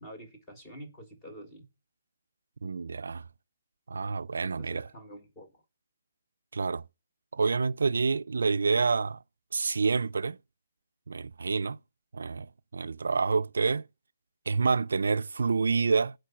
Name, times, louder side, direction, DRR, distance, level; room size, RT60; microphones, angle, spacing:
voice 1, 0.0-1.7 4.6-5.5, right 1 dB, 10° left, 1.5 m, -47 dB
voice 2, 2.6-3.2 3.9-4.9 6.5-6.8 7.3-9.2 9.5-10.4 11.1-11.8 12.1-13.8 14.5-16.1, right 4 dB, 85° right, 0.4 m, -28 dB
7.6 x 4.5 x 5.6 m
hypercardioid pair, 170°, 0 cm